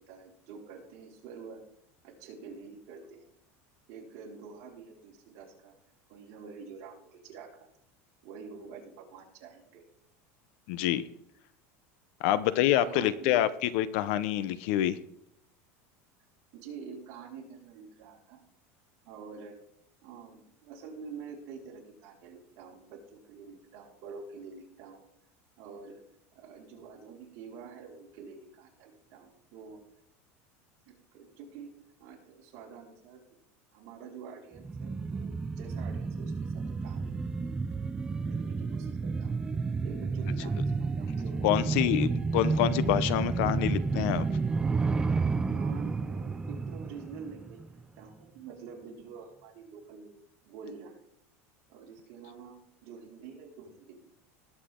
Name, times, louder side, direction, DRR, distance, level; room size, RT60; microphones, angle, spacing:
voice 1, 0.0-1.6 2.0-3.3 3.9-5.7 6.1-7.7 8.2-9.8 12.2-12.5 12.8-13.4 16.5-18.4 19.0-19.5 20.0-25.1 25.6-26.0 26.3-29.8 30.9-33.4 33.7-37.2 38.2-39.3 39.8-41.6 41.9-42.0 45.5-47.6 48.0-50.1 50.4-51.0 51.7-54.0, right 5 dB, 55° right, -3 dB, 5.2 m, -47 dB
voice 2, 10.7-11.0 12.2-15.0 41.4-44.3, left 12 dB, 65° left, 16 dB, 0.9 m, -27 dB
sound 1, 34.6-47.8 48.1-48.2, right 4 dB, 10° right, 0.4 m, -31 dB
20.0 x 8.3 x 3.8 m, 0.72 s
supercardioid pair, 160°, 7 cm